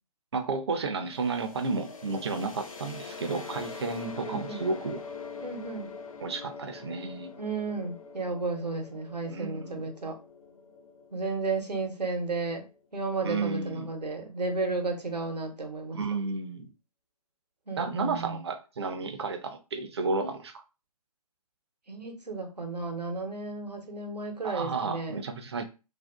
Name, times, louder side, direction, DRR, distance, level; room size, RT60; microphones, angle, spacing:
voice 1, 0.3-5.0 6.2-7.3 9.3-9.9 13.2-13.9 15.9-16.7 17.8-20.6 24.4-25.6, right 4 dB, 40° right, 0.4 m, -32 dB
sound 1, 1.1-12.8, left 5 dB, 55° left, 0.5 m, -44 dB
voice 2, 4.2-4.7 5.4-5.9 7.4-10.2 11.1-12.7 12.9-16.0 17.7-18.4 21.9-25.2, right 3 dB, 85° right, 0.8 m, -33 dB
2.5 x 2.3 x 2.2 m
figure-of-eight pair, 135°, 20 cm